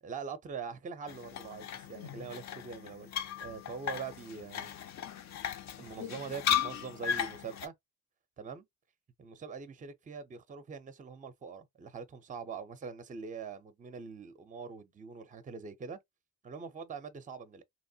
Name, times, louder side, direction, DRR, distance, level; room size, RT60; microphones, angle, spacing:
voice 1, 0.0-3.1 3.4-4.7 5.8-7.7 8.4-8.7 9.2-16.0 16.4-17.6, right 5 dB, 20° right, 0.5 m, -43 dB
sound 1, 1.1-7.7, left 9 dB, 50° left, 0.5 m, -36 dB
2.9 x 2.1 x 2.7 m
cardioid pair, 100°, 35 cm